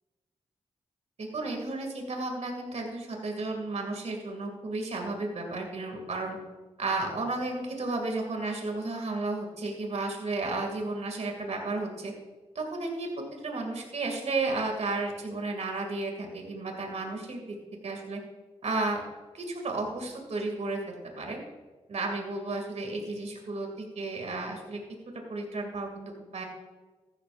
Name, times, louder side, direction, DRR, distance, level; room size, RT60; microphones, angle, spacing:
voice 1, 1.2-6.4 6.8-12.1 12.5-13.1 13.4-17.6 17.8-18.2 18.6-19.0 19.3-21.4 21.9-23.7 23.9-24.8 25.3-26.4, right 3 dB, 70° right, 2 dB, 2.6 m, -33 dB
14.5 x 12.5 x 2.6 m, 1.3 s
cardioid pair, 45°, 12 cm